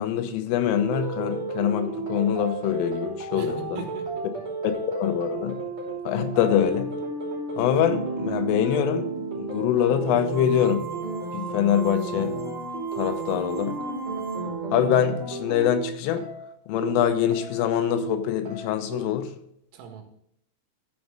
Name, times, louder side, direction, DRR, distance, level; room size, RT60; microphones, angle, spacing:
voice 1, 0.0-3.8 4.6-5.6 6.1-6.9 7.6-9.1 9.4-10.9 11.3-12.4 12.9-13.8 14.7-16.2 16.7-19.3, left 10 dB, 80° left, 8 dB, 3.3 m, -24 dB
sound 1, 0.7-19.0, right 3 dB, 35° right, 2.6 m, -33 dB
voice 2, 3.4-4.4 19.7-20.0, right 7 dB, 80° right, 3 dB, 4.1 m, -40 dB
sound 2, 10.3-14.7, right 6 dB, 55° right, 1.2 m, -39 dB
13.5 x 6.1 x 3.8 m, 0.72 s
omnidirectional pair, 5.9 m